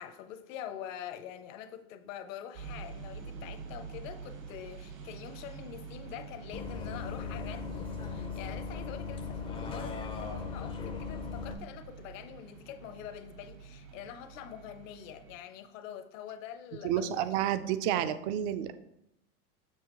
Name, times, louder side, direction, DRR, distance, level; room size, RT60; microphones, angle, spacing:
voice 1, 0.0-17.4, left 10 dB, 60° left, 9 dB, 0.9 m, -45 dB
sound 1, 2.5-15.4, right 5 dB, 70° right, 1.7 m, -47 dB
Bus, 6.5-11.5, left 5 dB, 15° left, 0.5 m, -38 dB
voice 2, 16.8-18.7, right 11 dB, 50° right, 13 dB, 0.6 m, -30 dB
7.3 x 6.1 x 3.0 m, 0.81 s
supercardioid pair, 130°, 43 cm